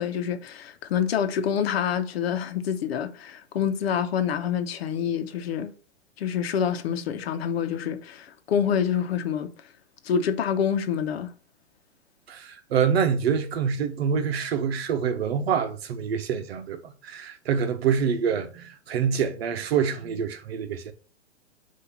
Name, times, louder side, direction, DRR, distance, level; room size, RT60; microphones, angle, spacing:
voice 1, 0.0-5.7 6.2-9.5 10.0-11.3, left 8 dB, 60° left, 1.0 m, -27 dB
voice 2, 12.3-20.9, right 7 dB, 60° right, 1.0 m, -26 dB
8.0 x 2.8 x 5.9 m
hypercardioid pair, 130°, 35 cm